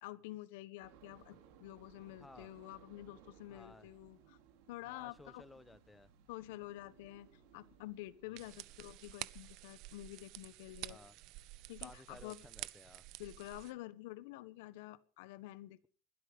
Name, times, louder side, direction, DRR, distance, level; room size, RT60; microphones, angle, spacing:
voice 1, 0.0-4.4 4.7-5.4 6.3-11.0 11.7-12.4 13.2-15.9, left 16 dB, 85° left, 16 dB, 1.1 m, -49 dB
sound 1, 0.8-9.0, right 9 dB, 85° right, 3.8 m, -63 dB
voice 2, 2.2-2.5 3.5-3.9 4.8-6.1 8.3-8.5 10.9-11.2 11.8-13.0, left 2 dB, 10° left, 16 dB, 0.9 m, -57 dB
sound 2, 8.4-13.7, right 18 dB, 60° right, 0.7 m, -50 dB
21.0 x 12.5 x 5.2 m, 0.42 s
cardioid pair, 150°, 0 cm